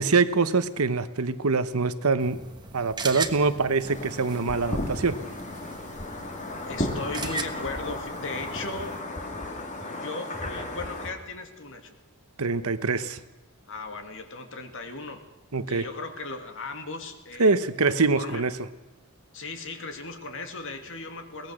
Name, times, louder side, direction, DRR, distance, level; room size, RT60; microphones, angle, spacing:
voice 1, 0.0-2.4 2.7-5.2 12.4-13.2 15.5-15.9 17.4-18.5, right 4 dB, 80° right, 12 dB, 1.1 m, -24 dB
sound 1, 2.2-9.0, right 4 dB, 20° right, 1.3 m, -39 dB
sound 2, 3.8-11.1, left 1 dB, 35° left, 2.5 m, -34 dB
voice 2, 6.6-9.0 9.8-12.0 13.7-15.2 15.7-17.6 17.9-18.4 19.3-21.5, left 3 dB, 60° left, 6 dB, 2.6 m, -37 dB
23.0 x 19.0 x 6.5 m, 1.1 s
head